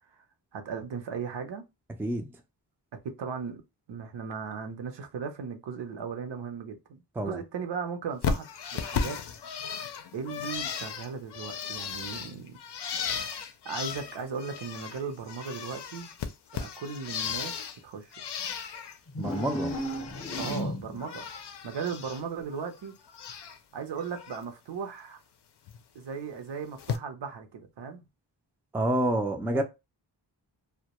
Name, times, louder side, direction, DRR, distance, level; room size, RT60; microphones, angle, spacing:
voice 1, 0.5-1.6 3.0-3.6 3.9-8.5 8.7-9.2 10.1-12.6 13.6-16.1 16.5-18.2 20.4-21.3 21.6-22.9 23.7-25.2 25.9-28.0 29.5-29.6, right 6 dB, 75° right, 0.7 m, -37 dB
Bird, 8.2-15.0 15.3-17.8 18.1-19.0 19.3-20.6 21.0-22.2 22.5-23.6 24.0-24.4 25.7-25.8 26.8-27.0, left 6 dB, 70° left, 0.5 m, -35 dB
sound 1, 19.1-21.1, equal, 30° left, 0.7 m, -34 dB
voice 2, 19.2-19.7 28.7-29.6, right 1 dB, 5° right, 0.3 m, -28 dB
2.2 x 2.1 x 2.8 m
wide cardioid pair, 95°, 43 cm